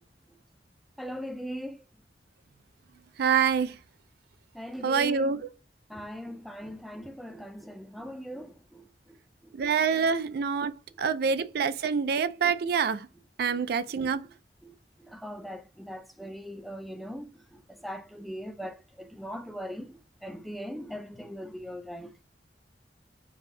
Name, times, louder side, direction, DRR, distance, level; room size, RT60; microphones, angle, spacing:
voice 1, 1.0-1.8 4.5-5.4 5.9-9.6 11.2-11.4 13.5-13.6 14.6-22.1, equal, ahead, 0.5 m, -40 dB
voice 2, 3.2-3.8 4.8-5.4 9.5-13.1 13.4-14.2, right 6 dB, 60° right, 0.4 m, -26 dB
4.0 x 2.7 x 3.8 m
head